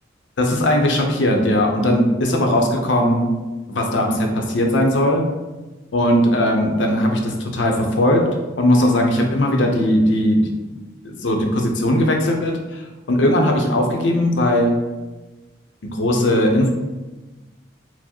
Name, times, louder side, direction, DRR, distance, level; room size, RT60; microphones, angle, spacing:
voice 1, 0.4-3.3 3.7-5.3 5.9-8.2 8.6-10.5 11.0-14.8 15.8-16.7, left 1 dB, 75° left, 2 dB, 0.6 m, -18 dB
4.5 x 2.1 x 4.3 m, 1.2 s
head